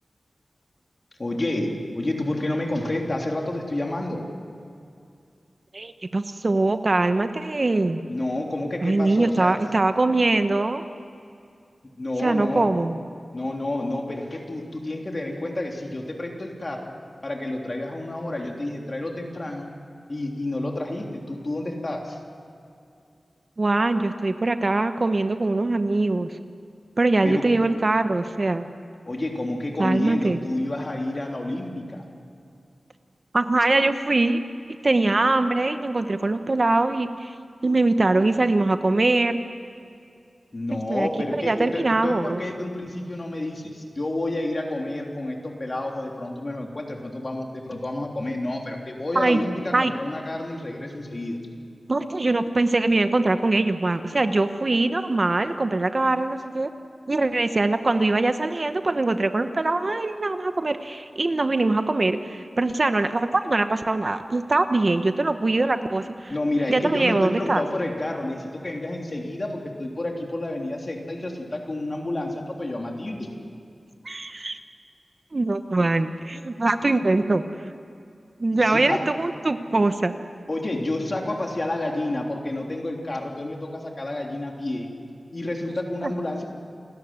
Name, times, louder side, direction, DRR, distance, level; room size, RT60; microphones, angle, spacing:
voice 1, 1.2-4.3 8.1-9.6 12.0-12.8 13.3-16.9 17.2-19.7 20.1-22.2 27.2-27.5 29.1-32.0 40.5-51.4 66.3-73.3 78.5-79.1 80.5-84.9 85.3-86.4, left 1 dB, 40° left, 1 dB, 3.4 m, -29 dB
voice 2, 5.7-8.0 8.8-10.8 12.2-13.0 23.6-26.3 27.0-28.7 29.8-30.4 33.3-34.4 34.8-37.3 37.6-39.4 40.7-41.1 41.4-42.4 49.1-49.4 49.7-49.9 51.9-56.7 57.1-66.3 66.7-67.6 74.0-74.6 75.3-77.4 78.4-80.1 86.0-86.1, right 2 dB, 45° right, 9 dB, 1.0 m, -22 dB
28.5 x 13.5 x 9.6 m, 2.4 s
wide cardioid pair, 75°, 0 cm